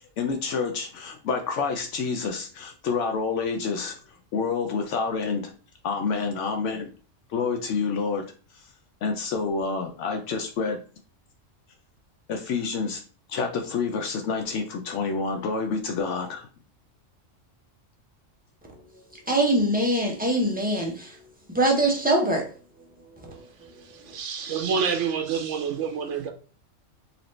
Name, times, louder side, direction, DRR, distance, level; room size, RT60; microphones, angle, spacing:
voice 1, 0.0-5.5 5.8-6.9 7.3-8.2 8.5-8.7 9.0-10.8 12.3-13.0 13.3-16.5, left 5 dB, 75° left, 0.9 m, -28 dB
voice 2, 19.3-21.2 21.5-22.5 23.2-23.7, right 1 dB, 10° right, 0.8 m, -23 dB
voice 3, 23.8-26.3, right 6 dB, 75° right, 1.1 m, -28 dB
4.1 x 2.7 x 3.1 m
omnidirectional pair, 1.3 m